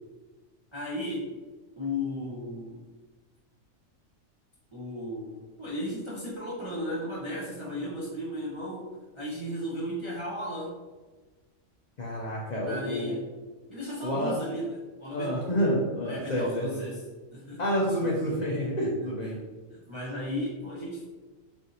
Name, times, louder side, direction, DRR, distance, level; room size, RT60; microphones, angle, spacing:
voice 1, 0.7-1.3 1.8-2.8 4.7-10.7 12.6-13.3 13.7-15.5 16.1-17.0 17.3-17.6 18.0-18.2 19.2-19.4 19.7-21.0, left 1 dB, 45° right, -7 dB, 0.3 m, -35 dB
voice 2, 12.0-13.2 14.0-14.3 15.1-16.7 17.6-19.4, equal, 75° left, -5 dB, 0.3 m, -28 dB
3.4 x 2.5 x 2.7 m, 1.3 s
omnidirectional pair, 1.4 m